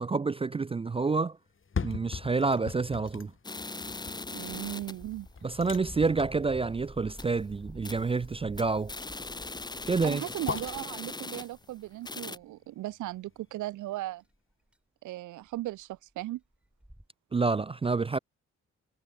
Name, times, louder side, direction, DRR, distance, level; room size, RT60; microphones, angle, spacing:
voice 1, 0.0-1.4 1.8-3.3 5.4-8.9 9.9-10.2 17.3-18.2, right 4 dB, 20° right, 0.4 m, -28 dB
sound 1, 1.5-13.5 13.9-14.0, left 5 dB, 40° left, 2.8 m, -41 dB
sound 2, 3.4-5.1 5.5-5.6 5.9-6.0 6.5-6.6 7.0-7.4 7.8-8.1 8.4-11.7 12.0-12.4, left 3 dB, 15° left, 0.7 m, -40 dB
voice 2, 4.3-5.3 10.0-14.2 15.0-16.4, right 16 dB, 75° right, 0.6 m, -37 dB
sound 3, 4.5-11.0 11.7-12.2 12.4-12.5 13.3-13.4 14.3-14.4 14.7-14.8 15.5-15.7 15.9-16.0 16.2-16.3 16.6-17.1, right 1 dB, 5° right, 1.6 m, -48 dB
cardioid pair, 65°, 30 cm